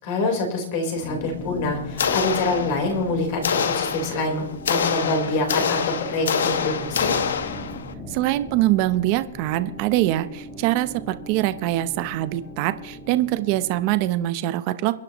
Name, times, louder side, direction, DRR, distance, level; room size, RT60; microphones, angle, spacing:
voice 1, 0.0-7.2, left 2 dB, 35° left, 2 dB, 4.1 m, -26 dB
sound 1, 1.0-14.3, left 1 dB, 15° left, 1.9 m, -39 dB
sound 2, 2.0-3.0 3.4-7.9, left 7 dB, 75° left, 1.2 m, -25 dB
voice 2, 8.1-14.9, right 15 dB, 35° right, 13 dB, 0.7 m, -23 dB
30.0 x 10.5 x 3.1 m, 0.81 s
hypercardioid pair, 170°, 0 cm